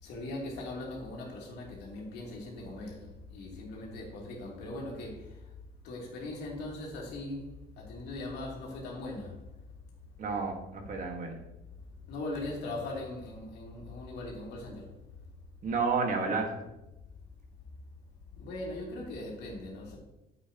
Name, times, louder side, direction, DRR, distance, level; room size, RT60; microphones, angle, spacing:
voice 1, 0.0-5.4 5.8-7.5 7.8-9.4 12.1-14.9 18.4-20.0, left 2 dB, 80° left, 2.9 m, -40 dB
voice 2, 10.2-11.4 15.6-16.5, right 4 dB, 50° right, 1.8 m, -30 dB
9.6 x 7.9 x 3.0 m
cardioid pair, 110°, 17 cm